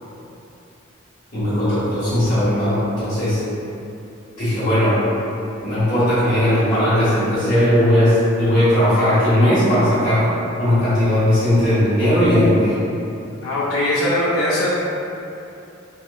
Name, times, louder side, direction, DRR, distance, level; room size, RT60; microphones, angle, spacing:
voice 1, 1.3-3.4 4.4-5.0 5.6-10.3 10.6-12.7, left 1 dB, 35° left, -14 dB, 1.0 m, -17 dB
voice 2, 13.4-14.7, left 1 dB, 90° left, -7 dB, 0.4 m, -20 dB
2.7 x 2.2 x 2.2 m, 2.7 s
head